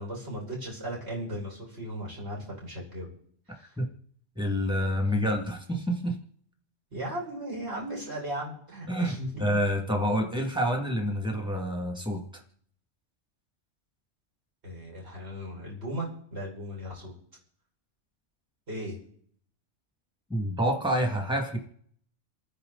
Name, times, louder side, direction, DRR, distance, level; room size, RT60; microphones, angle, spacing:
voice 1, 0.0-3.1 3.5-3.8 5.0-5.2 6.9-9.5 14.6-17.1 18.7-19.0, equal, 60° right, -2 dB, 6.2 m, -36 dB
voice 2, 4.4-6.2 8.9-9.1 9.4-12.2 20.3-21.6, equal, 5° right, 2 dB, 2.3 m, -27 dB
29.0 x 9.8 x 4.1 m, 0.62 s
omnidirectional pair, 1.2 m